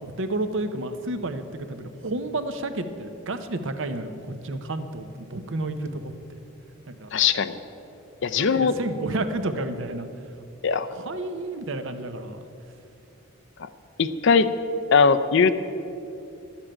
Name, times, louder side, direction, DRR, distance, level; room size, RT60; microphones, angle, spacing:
voice 1, 0.0-6.1 6.9-7.1 8.4-10.1 10.9-12.4, right 2 dB, 60° right, 9 dB, 0.8 m, -31 dB
voice 2, 7.1-7.6 8.2-8.7 10.6-10.9 13.6-13.7 14.0-14.5 14.9-15.5, left 5 dB, 55° left, 11 dB, 0.5 m, -20 dB
12.0 x 7.2 x 8.8 m, 2.7 s
head